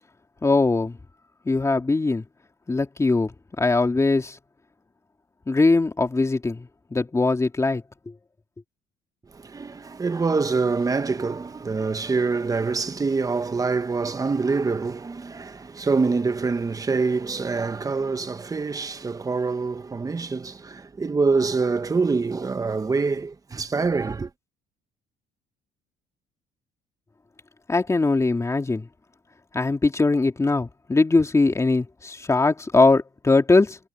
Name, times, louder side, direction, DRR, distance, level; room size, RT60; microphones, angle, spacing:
voice 1, 0.4-1.0 1.4-2.2 2.7-3.3 3.6-4.4 5.5-7.8 27.7-28.9 29.5-33.8, left 3 dB, 15° left, 2.9 m, -21 dB
voice 2, 9.3-24.3, right 4 dB, 20° right, 1.2 m, -25 dB
cardioid pair, 110°, 17 cm